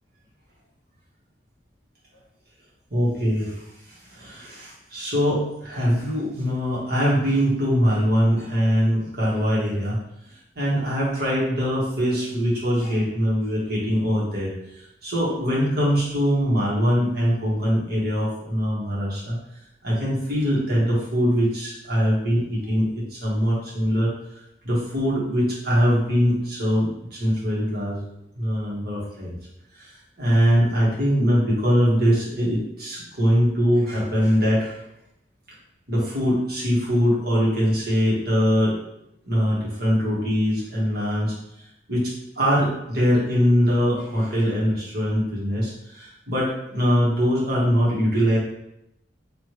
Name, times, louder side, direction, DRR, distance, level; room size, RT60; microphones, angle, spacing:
voice 1, 2.9-10.0 10.5-19.4 19.8-24.1 24.6-28.0 28.3-29.3 29.7-34.8 35.9-38.8 39.2-41.3 41.9-48.4, equal, 60° right, -6 dB, 1.5 m, -22 dB
4.9 x 2.9 x 3.0 m, 0.81 s
head